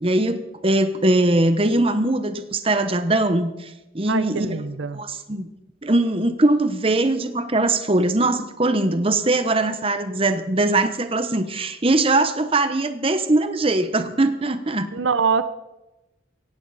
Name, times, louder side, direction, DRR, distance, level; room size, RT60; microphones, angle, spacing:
voice 1, 0.0-4.6 4.9-5.5 5.8-14.9, right 2 dB, 30° right, 10 dB, 0.9 m, -21 dB
voice 2, 4.1-5.0 14.9-15.4, right 5 dB, 80° right, 13 dB, 0.7 m, -23 dB
17.5 x 16.0 x 4.1 m, 1.0 s
head